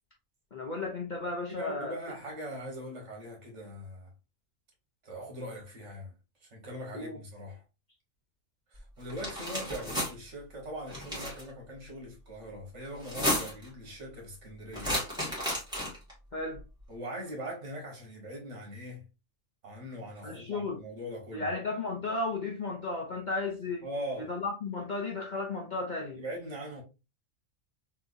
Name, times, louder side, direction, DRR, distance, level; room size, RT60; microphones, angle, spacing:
voice 1, 0.5-2.0 6.9-7.2 16.3-16.6 20.2-20.8 21.3-23.9 24.2-26.2, left 3 dB, 50° left, 0.6 m, -34 dB
voice 2, 1.5-4.1 5.0-6.1 6.4-7.6 8.7-14.9 16.9-19.1 19.6-21.5 23.8-24.3 26.1-26.8, equal, 60° right, 1.6 m, -41 dB
sound 1, 9.1-10.1 10.9-11.4 13.0-13.7 14.7-16.1, equal, 5° right, 1.6 m, -32 dB
3.5 x 2.9 x 2.5 m
omnidirectional pair, 1.4 m